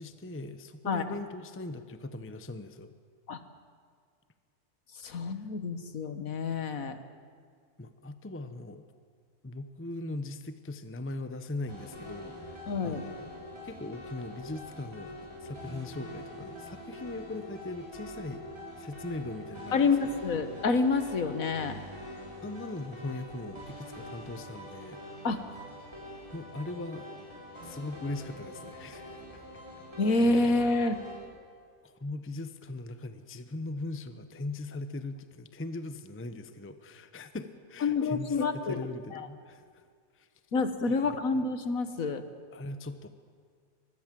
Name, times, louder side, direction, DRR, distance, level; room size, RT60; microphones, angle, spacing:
voice 1, 0.0-2.9 5.1-5.3 7.8-8.8 9.4-13.3 13.6-18.4 18.8-20.2 22.4-25.0 26.3-27.1 27.6-29.4 31.8-39.9 40.1-40.3 40.9-41.0 42.5-43.1, left 2 dB, 10° left, 10 dB, 0.8 m, -40 dB
voice 2, 5.0-7.0 12.7-13.0 19.7-21.8 25.2-25.4 30.0-31.0 37.8-39.3 40.5-42.2, left 3 dB, 60° left, 10 dB, 1.7 m, -28 dB
sound 1, 11.7-31.2, left 1 dB, 15° right, 6.3 m, -45 dB
24.0 x 20.5 x 7.7 m, 2.1 s
omnidirectional pair, 1.7 m